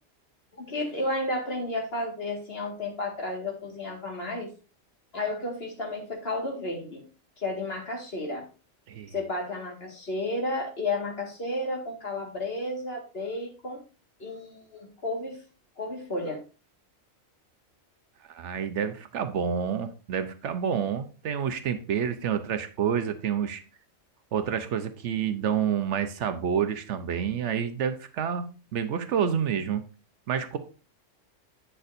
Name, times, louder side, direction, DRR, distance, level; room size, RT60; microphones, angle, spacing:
voice 1, 0.5-4.5 5.1-7.0 7.4-8.4 9.1-13.8 14.2-15.4 15.8-16.4, left 2 dB, 50° left, 1 dB, 2.1 m, -32 dB
voice 2, 18.3-23.6 24.3-28.4 28.7-29.8 30.3-30.6, right 8 dB, 70° right, 9 dB, 1.0 m, -28 dB
8.9 x 6.5 x 2.6 m, 0.33 s
omnidirectional pair, 1.3 m